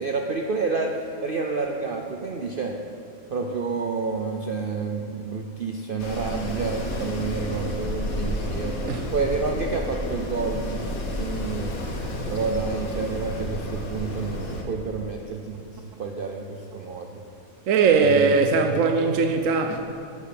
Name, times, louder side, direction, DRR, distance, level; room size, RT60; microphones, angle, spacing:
voice 1, 0.0-2.8 3.3-11.7 12.3-17.2 18.0-18.3, right 4 dB, 50° right, 0.7 m, -29 dB
Wind, 6.0-14.6, left 1 dB, 75° left, 1.8 m, -31 dB
voice 2, 17.7-19.9, right 4 dB, 70° right, 1.0 m, -20 dB
11.5 x 9.8 x 5.9 m
omnidirectional pair, 1.5 m